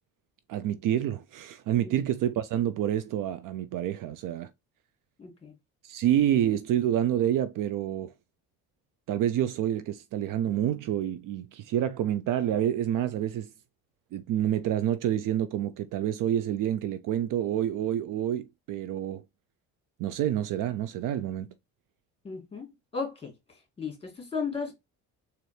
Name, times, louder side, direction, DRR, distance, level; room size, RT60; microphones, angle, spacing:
voice 1, 0.5-4.5 5.8-8.1 9.1-13.5 14.1-19.2 20.0-21.6, right 11 dB, 60° right, 0.5 m, -28 dB
voice 2, 5.2-5.5 22.2-22.7 22.9-23.3 23.8-24.7, left 5 dB, 15° left, 2.3 m, -34 dB
4.1 x 2.6 x 3.3 m
supercardioid pair, 85°, 38 cm